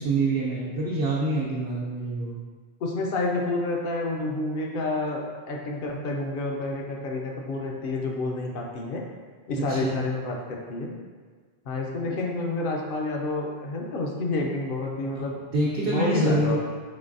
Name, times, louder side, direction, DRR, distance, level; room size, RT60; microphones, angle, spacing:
voice 1, 0.0-2.4 9.7-10.0 12.0-12.1 15.5-16.6, right 2 dB, 85° right, -7 dB, 0.9 m, -26 dB
voice 2, 2.8-9.0 9.5-10.9 11.7-15.4 15.8-16.6, left 2 dB, 65° left, 0 dB, 0.7 m, -29 dB
3.9 x 3.1 x 2.6 m, 1.5 s
omnidirectional pair, 1.1 m